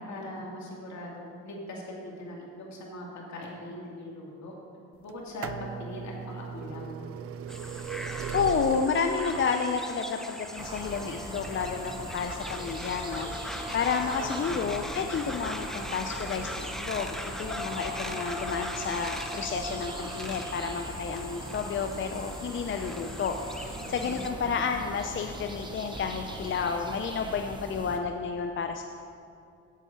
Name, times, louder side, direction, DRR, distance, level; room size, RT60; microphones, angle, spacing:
voice 1, 0.0-4.6 5.0-6.9 14.1-14.7 23.6-24.3, left 1 dB, 65° left, -2 dB, 2.4 m, -41 dB
sound 1, 5.1-16.7 17.6-17.7 18.6-18.7 18.9-19.0, right 8 dB, 50° right, 0.4 m, -41 dB
sound 2, 7.5-24.3, equal, ahead, 0.6 m, -41 dB
voice 2, 8.1-28.8, left 5 dB, 40° left, 5 dB, 0.6 m, -31 dB
sound 3, 10.6-28.0, right 1 dB, 15° right, 1.1 m, -39 dB
8.3 x 8.3 x 5.6 m, 2.5 s
cardioid pair, 90°, 30 cm